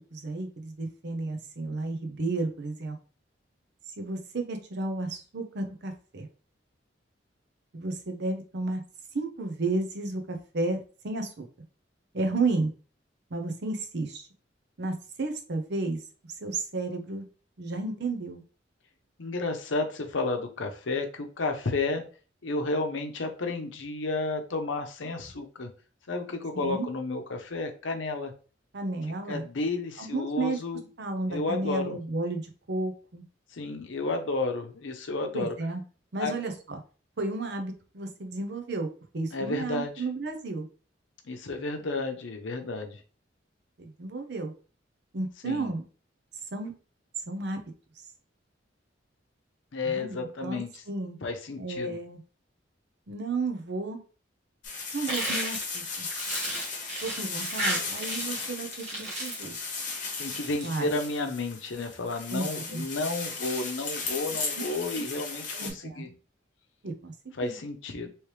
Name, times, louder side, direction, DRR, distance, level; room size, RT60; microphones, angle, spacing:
voice 1, 0.0-3.0 4.0-6.3 7.7-8.8 9.1-11.5 12.1-12.7 13.3-14.3 14.8-16.0 16.4-17.3 17.6-18.4 26.5-26.9 28.7-29.4 30.0-30.6 31.0-33.2 35.3-35.8 36.1-36.8 37.2-38.9 39.1-40.7 43.8-44.5 45.1-45.8 46.5-46.7 47.3-47.6 49.8-50.6 50.9-51.2 51.6-52.2 53.1-54.0 54.9-56.1 57.0-59.6 60.6-60.9 62.3-62.5 62.7-62.8 64.9-65.0 65.5-66.1 66.8-67.1 67.4-67.6, right 3 dB, 65° right, 6 dB, 0.7 m, -32 dB
voice 2, 19.2-22.0 22.4-25.7 26.1-28.3 29.3-30.8 31.3-32.0 33.5-35.5 36.2-36.3 39.3-39.9 41.2-43.0 45.4-45.8 49.7-50.8 51.2-52.0 60.2-66.1 67.4-68.1, left 3 dB, 85° left, 6 dB, 0.7 m, -32 dB
sound 1, 54.6-65.7, left 4 dB, 45° left, 1.0 m, -36 dB
sound 2, 55.1-58.5 58.7-59.5 60.2-60.7, right 1 dB, 35° right, 1.4 m, -33 dB
3.2 x 3.1 x 3.1 m, 0.38 s
head